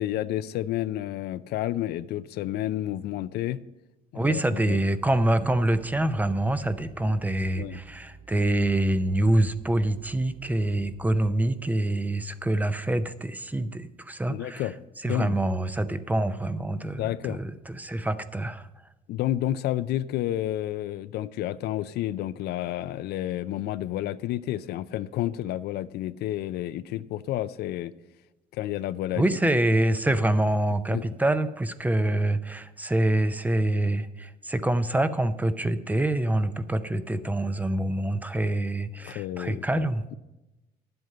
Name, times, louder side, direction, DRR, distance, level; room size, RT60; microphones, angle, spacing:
voice 1, 0.0-3.6 4.1-4.8 7.0-7.2 7.6-7.8 14.3-14.8 15.0-15.4 17.0-17.4 19.1-27.9 28.5-29.2 30.9-31.1 39.0-39.9, left 13 dB, 70° left, 15 dB, 0.4 m, -30 dB
voice 2, 4.1-14.7 15.0-18.7 29.2-40.0, right 1 dB, 10° right, 12 dB, 0.5 m, -26 dB
sound 1, 5.4-11.3, right 5 dB, 85° right, 0.8 m, -51 dB
11.0 x 7.8 x 5.5 m, 0.99 s
cardioid pair, 110°, 17 cm